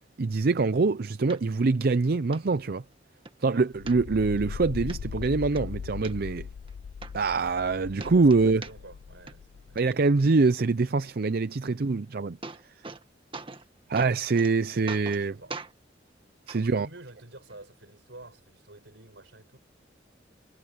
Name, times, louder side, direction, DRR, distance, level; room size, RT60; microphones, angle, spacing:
voice 1, 0.2-2.8 3.4-6.5 7.1-8.6 9.8-12.4 13.9-15.3 16.5-16.9, right 3 dB, 55° right, 0.5 m, -24 dB
sound 1, 1.3-1.4 1.9-2.0 2.3-2.4 2.9-3.3 3.9-4.4 4.9-5.0 5.4-6.1 6.7-6.8 7.0-7.7 8.0-9.0 9.3-9.8 11.9-12.0 12.2-13.0 13.3-13.7 14.0-14.5 14.9-15.2 15.5-15.7 16.5-16.6 17.5-17.6, right 3 dB, 30° right, 1.6 m, -41 dB
sound 2, 3.7-9.8, left 6 dB, 85° left, 0.4 m, -39 dB
voice 2, 7.8-9.9 15.2-15.6 16.5-19.6, right 2 dB, 70° right, 5.7 m, -49 dB
head